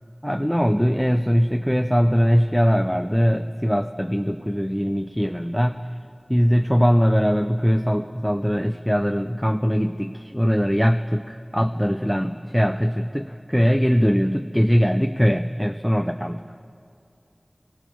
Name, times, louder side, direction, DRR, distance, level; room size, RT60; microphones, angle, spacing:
voice 1, 0.2-5.8 6.3-16.4, equal, ahead, 8 dB, 0.4 m, -21 dB
19.0 x 16.5 x 4.6 m, 2.5 s
wide cardioid pair, 50°, 0 cm